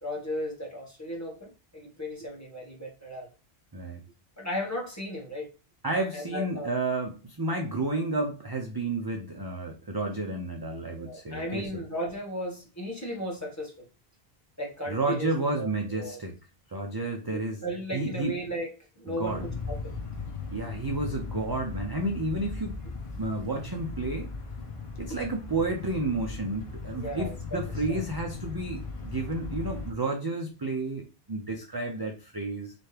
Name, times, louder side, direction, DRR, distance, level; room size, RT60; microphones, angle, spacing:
voice 1, 0.0-3.3 4.4-5.5 6.1-6.7 10.9-13.9 14.6-16.2 17.3-18.7 19.0-19.9 26.9-27.6 27.9-28.0, equal, 15° left, 1.6 m, -36 dB
voice 2, 5.8-11.8 14.9-16.4 16.7-17.6 17.9-18.4 19.1-19.5 20.5-22.8 23.1-24.3 25.0-32.7, right 2 dB, 30° right, 0.5 m, -31 dB
sound 1, 19.2-29.9, left 4 dB, 35° left, 0.7 m, -38 dB
4.1 x 3.3 x 3.3 m
omnidirectional pair, 1.0 m